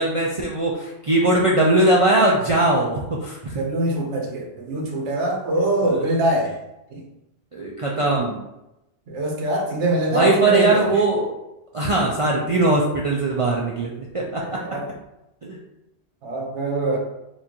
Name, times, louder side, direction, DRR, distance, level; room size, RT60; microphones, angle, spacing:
voice 1, 0.0-3.6 7.5-8.4 10.1-11.3 11.7-14.6 15.4-15.6, right 2 dB, 55° right, -3 dB, 0.3 m, -20 dB
voice 2, 3.5-6.5 6.9-7.0 9.1-10.8 14.4-14.9 16.2-17.0, right 1 dB, 80° right, 1 dB, 1.1 m, -23 dB
4.4 x 2.5 x 2.9 m, 0.92 s
omnidirectional pair, 1.2 m